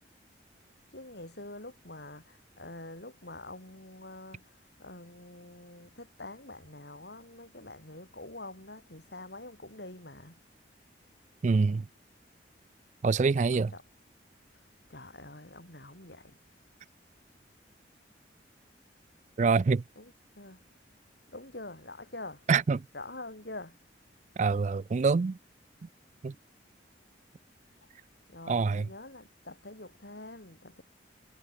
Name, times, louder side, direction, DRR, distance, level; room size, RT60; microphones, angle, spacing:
voice 1, 0.9-10.4 13.5-13.8 14.5-16.4 19.9-20.7 21.3-22.4 22.9-23.8 28.3-30.8, left 2 dB, 65° left, 7.5 m, -46 dB
voice 2, 11.4-11.9 13.0-13.7 19.4-19.8 22.5-22.9 24.4-25.4 26.2-26.3 28.5-28.9, right 4 dB, 40° right, 0.3 m, -25 dB
head